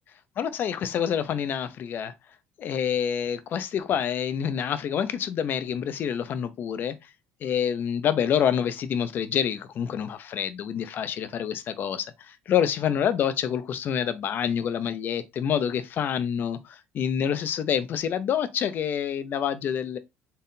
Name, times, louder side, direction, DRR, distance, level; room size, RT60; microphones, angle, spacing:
voice 1, 0.4-2.1 2.6-7.0 7.4-20.0, left 8 dB, 40° left, 0.6 m, -27 dB
4.3 x 3.6 x 2.6 m
cardioid pair, 135°, 5 cm